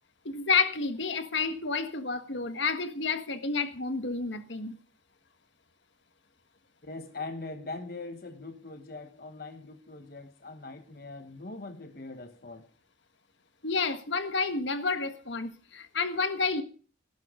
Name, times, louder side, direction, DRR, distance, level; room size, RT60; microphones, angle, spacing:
voice 1, 0.2-4.7 13.6-16.6, left 4 dB, 75° left, 1.6 m, -30 dB
voice 2, 6.8-12.7, left 3 dB, 50° left, 1.2 m, -41 dB
16.0 x 12.0 x 3.8 m
head